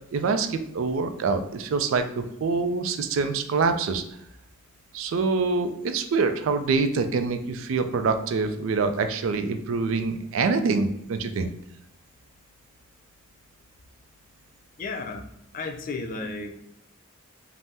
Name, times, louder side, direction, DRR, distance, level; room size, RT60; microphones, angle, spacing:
voice 1, 0.1-4.0 4.9-11.5, right 4 dB, 65° right, 8 dB, 0.3 m, -25 dB
voice 2, 14.8-15.2 15.5-16.6, left 3 dB, 40° left, 4 dB, 0.3 m, -33 dB
2.7 x 2.0 x 3.4 m, 0.79 s
head